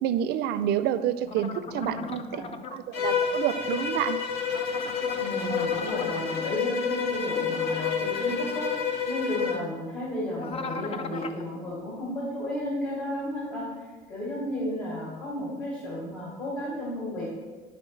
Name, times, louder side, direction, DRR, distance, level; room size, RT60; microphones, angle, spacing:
voice 1, 0.0-2.4 2.7-4.2, right 10 dB, 80° right, 12 dB, 0.4 m, -28 dB
voice 2, 1.2-2.6 5.2-13.8 14.1-17.3, left 1 dB, 50° left, -7 dB, 2.3 m, -33 dB
sound 1, 1.3-2.8 4.4-6.2 10.3-11.4, left 5 dB, 35° left, 0.4 m, -38 dB
Bowed string instrument, 2.9-9.7, left 6 dB, 80° left, 0.8 m, -29 dB
11.0 x 4.0 x 3.2 m, 1.3 s
cardioid pair, 110°, 17 cm